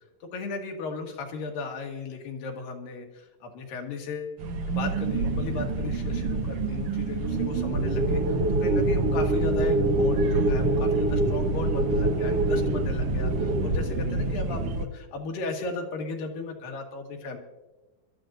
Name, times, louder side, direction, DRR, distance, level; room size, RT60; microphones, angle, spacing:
voice 1, 0.2-4.4 4.7-17.4, left 4 dB, 85° left, 2 dB, 3.2 m, -36 dB
sound 1, 4.4-14.9, right 2 dB, 65° right, 1.6 m, -25 dB
26.5 x 13.0 x 2.6 m, 1.1 s
omnidirectional pair, 4.0 m